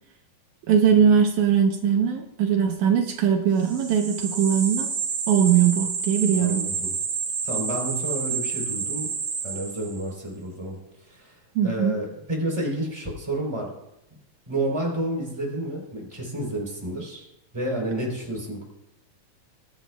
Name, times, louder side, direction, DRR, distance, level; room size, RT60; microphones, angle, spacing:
voice 1, 0.7-4.9 5.3-6.7 11.6-12.0, right 8 dB, 75° right, 3 dB, 2.3 m, -20 dB
sound 1, 3.6-10.1, right 6 dB, 45° right, 2.0 m, -29 dB
voice 2, 6.4-7.0 7.4-9.1 9.4-10.8 11.1-13.7 14.5-17.3 17.5-18.6, right 1 dB, 10° right, -1 dB, 3.5 m, -30 dB
22.0 x 10.5 x 2.3 m, 0.89 s
omnidirectional pair, 3.5 m